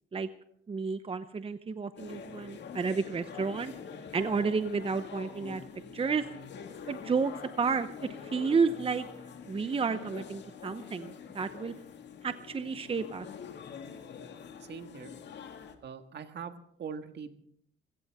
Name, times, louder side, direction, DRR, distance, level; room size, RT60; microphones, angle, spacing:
voice 1, 0.7-3.7 4.1-5.6 5.9-6.2 6.9-7.3 7.6-9.0 9.5-11.7 12.2-13.3, right 5 dB, 30° right, 11 dB, 0.8 m, -31 dB
sound 1, 2.0-15.8, left 6 dB, 60° left, 2.0 m, -45 dB
voice 2, 14.6-15.1 15.8-17.3, right 6 dB, 60° right, 7 dB, 1.7 m, -42 dB
22.0 x 16.5 x 3.6 m, 0.69 s
cardioid pair, 90°, 20 cm